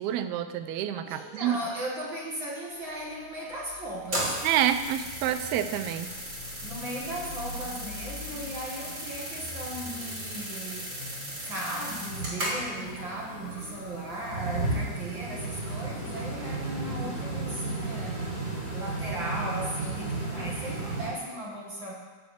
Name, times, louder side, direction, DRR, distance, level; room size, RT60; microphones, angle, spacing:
voice 1, 0.0-1.6 4.4-6.1, right 10 dB, 80° right, 10 dB, 2.6 m, -28 dB
voice 2, 1.0-4.4 6.6-10.9 11.4-18.2 18.7-21.9, right 1 dB, 45° right, -3 dB, 1.8 m, -37 dB
sound 1, 2.8-14.9, left 3 dB, 55° left, 2.7 m, -47 dB
sound 2, 4.0-21.1, right 2 dB, 25° right, 4.0 m, -35 dB
13.0 x 6.7 x 8.3 m, 1.4 s
omnidirectional pair, 4.5 m